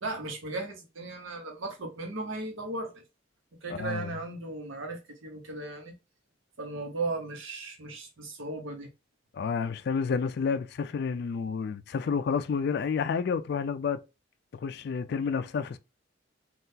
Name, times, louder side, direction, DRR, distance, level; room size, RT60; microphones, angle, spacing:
voice 1, 0.0-2.9 3.6-5.9 6.6-8.9, right 2 dB, 80° right, 1.0 m, -36 dB
voice 2, 3.7-4.1 9.3-14.0 14.5-15.8, left 5 dB, 55° left, 0.3 m, -30 dB
3.7 x 2.4 x 2.7 m
head